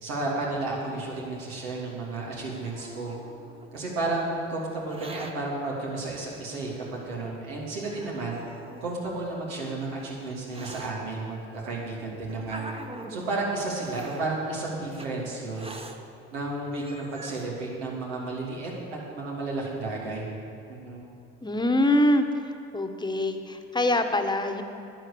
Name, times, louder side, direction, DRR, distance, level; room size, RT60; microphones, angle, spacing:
voice 1, 0.0-3.2 3.7-8.4 8.8-12.7 13.1-15.7 16.3-20.3 20.7-21.0, right 2 dB, 85° right, -3 dB, 3.1 m, -32 dB
Hiss, 2.1-3.8 4.7-5.3 6.3-6.4 7.2-7.3 7.8-8.9 9.7-10.9 11.8-13.3 13.9-14.2 14.9-15.1 15.5-16.0 16.4-16.5 16.7-17.5, right 2 dB, 20° right, 1.2 m, -43 dB
voice 2, 21.4-22.3 22.7-24.6, left 1 dB, 15° left, 6 dB, 1.3 m, -24 dB
11.5 x 9.8 x 7.0 m, 2.7 s
hypercardioid pair, 70°, 30 cm